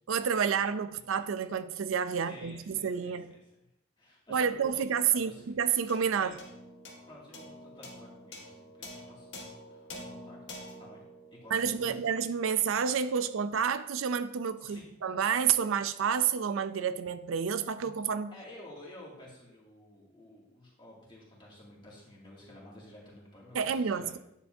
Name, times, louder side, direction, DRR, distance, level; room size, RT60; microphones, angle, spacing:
voice 1, 0.1-3.4 4.3-6.3 11.5-18.3 23.5-24.2, right 7 dB, 85° right, 0.4 m, -29 dB
voice 2, 2.1-3.5 4.0-5.4 6.1-6.3 7.1-12.1 14.6-14.9 18.3-24.2, left 1 dB, 25° left, 2.3 m, -52 dB
sound 1, 5.9-12.5, left 1 dB, 60° left, 1.5 m, -48 dB
10.0 x 7.2 x 2.7 m
head